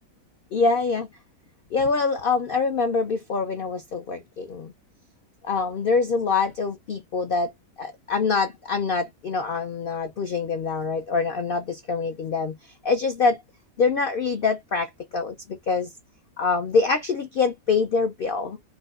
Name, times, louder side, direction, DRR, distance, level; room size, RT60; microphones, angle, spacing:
voice 1, 0.5-1.1 1.7-4.7 5.4-7.5 7.8-12.6 12.8-13.4 13.8-15.9 16.4-18.6, left 4 dB, 70° left, 0.5 m, -25 dB
4.5 x 2.1 x 2.3 m
omnidirectional pair, 1.6 m